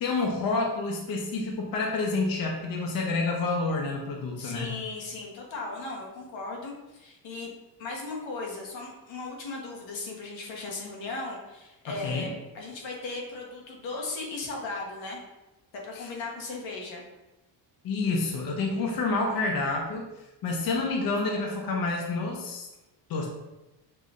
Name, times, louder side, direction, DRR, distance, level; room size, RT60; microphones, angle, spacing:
voice 1, 0.0-4.7 11.9-12.3 15.9-16.1 17.8-20.1 20.4-22.7 23.1-23.3, left 3 dB, 50° left, 0 dB, 0.7 m, -28 dB
voice 2, 4.4-7.5 7.8-15.2 15.7-17.1, left 3 dB, 85° left, -1 dB, 1.1 m, -37 dB
5.5 x 3.1 x 2.5 m, 1.0 s
cardioid pair, 125°, 44 cm